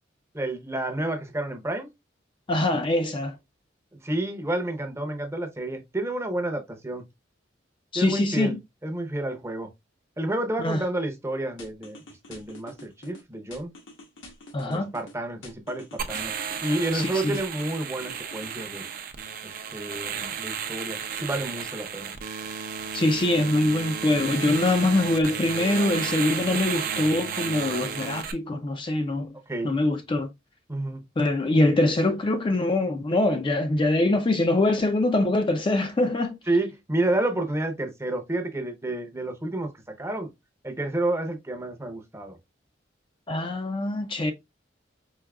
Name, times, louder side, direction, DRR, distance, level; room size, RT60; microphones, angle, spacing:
voice 1, 0.3-1.9 4.0-7.0 7.9-9.7 10.2-12.0 12.3-13.7 14.6-16.3 16.6-18.8 19.4-22.1 29.5-29.8 30.7-31.1 36.5-39.7 40.0-40.3 40.6-42.4, right 1 dB, 15° right, 0.7 m, -30 dB
voice 2, 2.5-3.4 7.9-8.6 10.6-10.8 14.5-14.9 16.9-17.4 22.9-29.4 29.6-30.3 31.2-36.4 43.3-44.3, left 2 dB, 25° left, 0.4 m, -24 dB
sound 1, 11.6-13.2 13.5-15.1 15.4-17.0 17.3-18.9, left 1 dB, 80° left, 1.1 m, -46 dB
sound 2, 16.0-28.3, right 7 dB, 50° right, 0.5 m, -33 dB
4.7 x 2.7 x 2.3 m
head